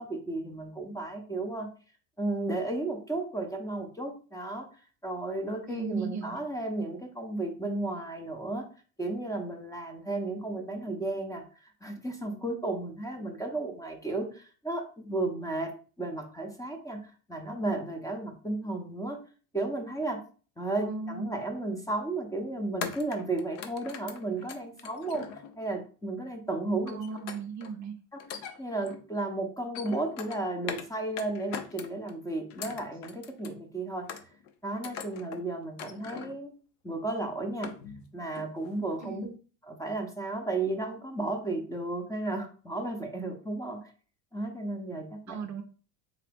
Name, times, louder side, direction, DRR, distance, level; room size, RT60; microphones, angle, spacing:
voice 1, 0.0-1.7 2.2-4.7 5.0-8.7 9.0-15.7 16.0-19.2 19.5-20.2 20.6-25.3 25.6-27.0 28.1-28.2 28.6-34.1 34.6-36.5 36.8-37.7 38.1-39.3 39.7-43.9 44.3-45.4, right 2 dB, 5° left, 4 dB, 0.6 m, -33 dB
voice 2, 5.7-6.4 20.8-21.4 26.9-27.9 39.0-39.4 45.3-45.6, right 4 dB, 40° right, 5 dB, 0.5 m, -37 dB
sound 1, 21.4-21.6 22.8-25.8 26.9-27.7 28.2-29.1 29.5-30.9 31.2-32.1 32.5-33.6 34.1-34.5 34.8-35.4 35.8-36.4 36.9-37.0 37.4-38.1 38.4-38.7 39.0-39.1, left 7 dB, 80° left, 0.7 m, -41 dB
3.9 x 2.8 x 3.4 m, 0.39 s
supercardioid pair, 105°, 47 cm